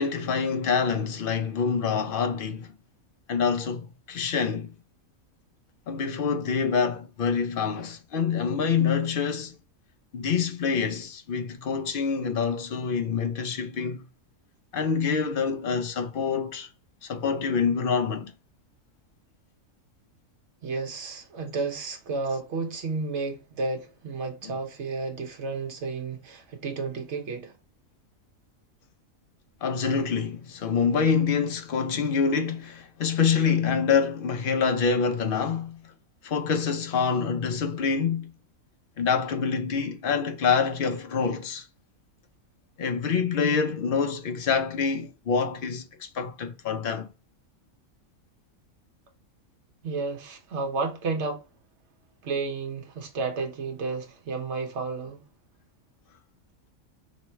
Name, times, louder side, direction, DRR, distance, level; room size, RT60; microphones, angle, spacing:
voice 1, 0.0-2.7 3.3-4.7 5.9-9.5 10.1-14.1 14.7-16.7 17.0-18.3 24.4-24.6 29.6-35.8 36.2-38.3 39.0-41.6 42.8-47.1, left 6 dB, 55° left, 0.6 m, -26 dB
voice 2, 20.6-27.5 49.8-51.4 52.2-55.2, right 3 dB, 55° right, 1.2 m, -32 dB
3.1 x 3.0 x 4.3 m
omnidirectional pair, 1.5 m